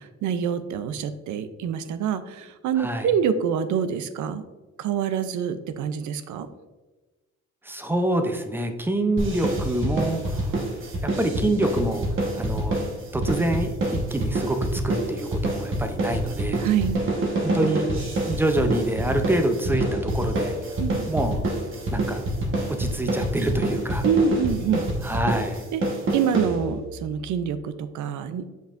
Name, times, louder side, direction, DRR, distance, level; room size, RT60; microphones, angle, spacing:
voice 1, 0.0-4.4 4.8-6.5 16.6-17.0 20.8-21.0 24.0-24.8 25.7-25.8 26.1-28.6, right 7 dB, 85° right, 11 dB, 0.6 m, -26 dB
voice 2, 2.8-3.1 7.6-10.6 11.0-12.1 12.4-12.8 13.1-16.6 17.4-17.9 18.3-20.6 21.0-21.4 21.9-22.2 22.8-24.1 25.0-25.6, right 1 dB, 5° right, 6 dB, 0.5 m, -26 dB
sound 1, 9.2-26.9, right 1 dB, 45° right, 1.3 m, -27 dB
7.5 x 5.4 x 2.5 m, 1.2 s
cardioid pair, 140°, 29 cm